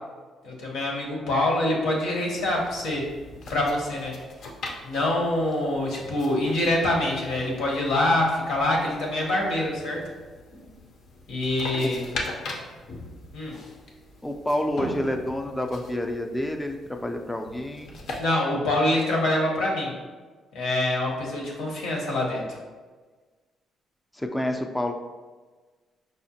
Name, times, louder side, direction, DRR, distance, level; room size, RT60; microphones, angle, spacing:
voice 1, 0.4-3.0 3.5-4.2 4.8-10.0 11.3-12.0 13.3-13.6 18.2-19.9 20.5-22.6, left 1 dB, 85° left, -2 dB, 0.9 m, -25 dB
sound 1, 2.3-18.2, left 2 dB, 70° left, 0.6 m, -41 dB
voice 2, 14.2-17.9 24.1-24.9, left 1 dB, 10° left, 4 dB, 0.3 m, -28 dB
5.0 x 2.1 x 2.7 m, 1.4 s
cardioid pair, 90°, 0 cm